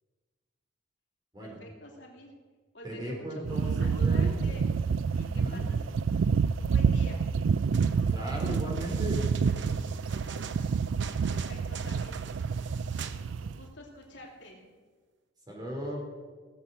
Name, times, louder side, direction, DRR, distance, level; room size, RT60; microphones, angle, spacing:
voice 1, 1.4-2.3 2.7-4.7 5.1-6.2 6.6-7.2 11.3-12.2 13.4-14.6, left 1 dB, 65° left, -1 dB, 2.9 m, -48 dB
voice 2, 2.8-4.4 5.1-5.7 8.1-9.2 15.5-16.0, equal, 20° right, -1 dB, 3.5 m, -37 dB
sound 1, 3.4-13.6, right 5 dB, 85° right, 0.4 m, -28 dB
sound 2, 7.6-13.2 13.5-13.6, right 5 dB, 70° right, 0.8 m, -44 dB
17.5 x 7.6 x 6.8 m, 1.5 s
head